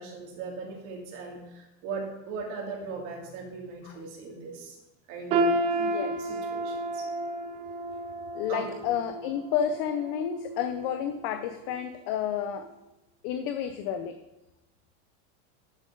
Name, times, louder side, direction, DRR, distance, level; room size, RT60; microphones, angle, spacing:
voice 1, 0.0-4.8 5.1-5.4 6.2-7.0 8.5-8.7, right 4 dB, 45° right, 0 dB, 2.8 m, -39 dB
sound 1, 5.3-11.3 11.7-11.9 12.6-12.7, right 2 dB, 15° right, 0.3 m, -31 dB
voice 2, 5.7-6.4 8.3-12.7 13.2-14.1, left 9 dB, 40° left, 8 dB, 0.6 m, -31 dB
12.0 x 7.5 x 3.8 m, 0.99 s
supercardioid pair, 160°, 41 cm